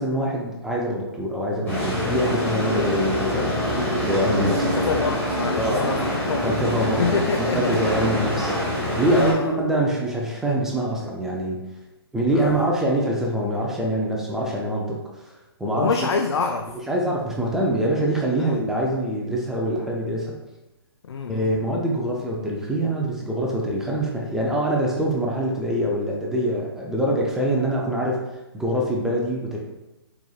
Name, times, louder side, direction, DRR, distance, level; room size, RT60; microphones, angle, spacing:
voice 1, 0.0-3.6 4.0-4.6 5.6-5.9 6.4-7.0 7.3-8.5 9.0-11.6 12.1-15.3 15.6-16.0 16.9-20.3 21.3-29.6, right 1 dB, 5° right, -3 dB, 0.5 m, -24 dB
sound 1, 1.7-9.3, equal, 15° left, 1.5 m, -25 dB
voice 2, 4.4-6.0 6.3-6.6 7.0-8.2 9.1-9.6 12.3-12.7 15.7-16.7 18.4-18.6 21.0-21.5, left 5 dB, 85° left, 5 dB, 0.4 m, -27 dB
4.5 x 4.3 x 2.4 m, 0.98 s
hypercardioid pair, 140°, 13 cm